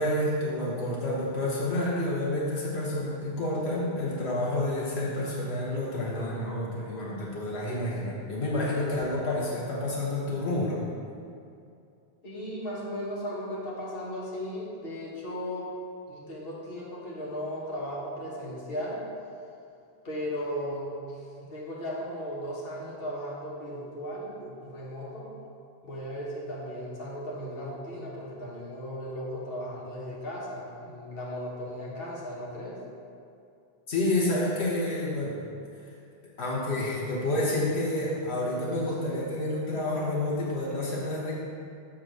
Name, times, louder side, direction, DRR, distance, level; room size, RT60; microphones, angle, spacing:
voice 1, 0.0-10.8 33.9-35.4 36.4-41.4, left 1 dB, 90° left, -5 dB, 1.3 m, -29 dB
voice 2, 12.2-15.7 16.1-19.1 20.0-25.3 25.8-32.8, equal, 60° left, -6 dB, 1.5 m, -36 dB
6.5 x 3.7 x 6.0 m, 2.5 s
omnidirectional pair, 1.1 m